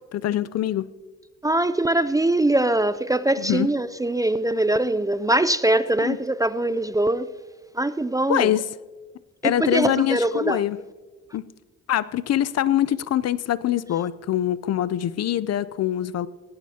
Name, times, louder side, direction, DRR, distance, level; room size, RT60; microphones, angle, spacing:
voice 1, 0.1-0.9 3.4-3.7 6.0-6.2 8.3-8.6 9.4-10.8 11.3-11.4 11.9-16.3, left 11 dB, 55° left, 0.5 m, -24 dB
voice 2, 1.4-7.3 7.7-8.5 9.4-10.6, right 1 dB, 10° right, 0.4 m, -22 dB
18.0 x 17.0 x 2.8 m
cardioid pair, 90°, 30 cm